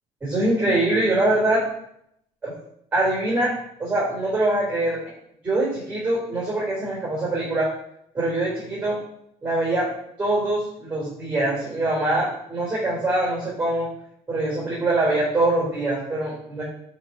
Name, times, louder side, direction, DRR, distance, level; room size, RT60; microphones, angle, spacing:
voice 1, 0.2-1.6 2.4-2.5 2.9-3.5 3.8-5.0 5.4-7.7 8.1-9.0 9.4-9.9 10.2-13.9 14.3-16.6, right 2 dB, 15° right, -6 dB, 4.6 m, -23 dB
11.5 x 4.4 x 6.5 m, 0.74 s
cardioid pair, 155°, 12 cm